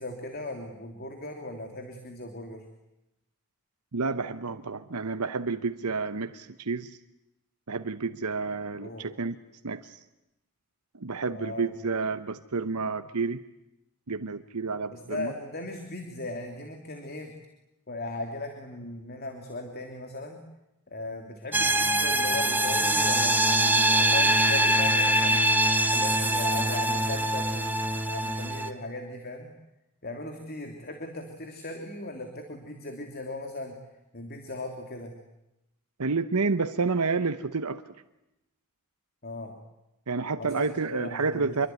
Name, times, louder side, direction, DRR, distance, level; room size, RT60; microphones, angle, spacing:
voice 1, 0.0-2.6 8.8-9.1 11.3-11.7 14.9-17.3 17.9-20.4 20.9-25.4 25.8-29.5 30.0-33.8 34.1-35.1 39.2-39.5 40.4-41.7, left 2 dB, 45° left, 4 dB, 3.0 m, -38 dB
voice 2, 3.9-7.0 7.7-9.4 9.6-10.0 11.0-13.4 14.1-15.3 36.0-37.8 40.1-41.7, right 4 dB, 90° right, 10 dB, 1.0 m, -30 dB
sound 1, 21.5-28.7, right 1 dB, 10° right, 1.5 m, -23 dB
27.0 x 23.0 x 9.4 m, 0.91 s
head